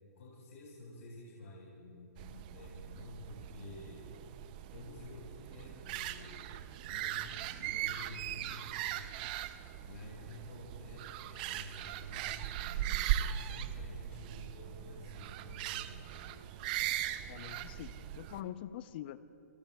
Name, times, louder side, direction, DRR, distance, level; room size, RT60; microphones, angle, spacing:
voice 1, 0.1-4.1 4.7-9.1 9.8-16.4, left 2 dB, 70° left, -5 dB, 4.7 m, -51 dB
sound 1, 2.2-18.4, right 12 dB, 35° right, 0.5 m, -39 dB
voice 2, 17.3-19.2, left 12 dB, 40° left, 14 dB, 0.6 m, -44 dB
27.0 x 21.5 x 2.3 m, 2.9 s
hypercardioid pair, 150°, 9 cm